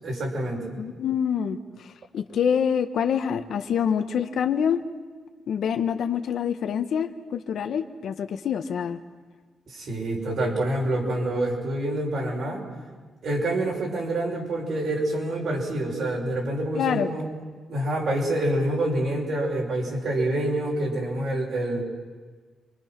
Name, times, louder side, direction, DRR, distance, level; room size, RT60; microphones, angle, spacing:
voice 1, 0.0-0.8 9.7-12.6 13.2-17.3 17.7-21.8, right 1 dB, 55° right, -1 dB, 6.5 m, -27 dB
voice 2, 0.8-1.9 2.1-4.8 5.5-9.0 16.7-17.1, left 8 dB, 65° left, 7 dB, 1.4 m, -26 dB
29.5 x 24.5 x 6.1 m, 1.4 s
cardioid pair, 140°, 0 cm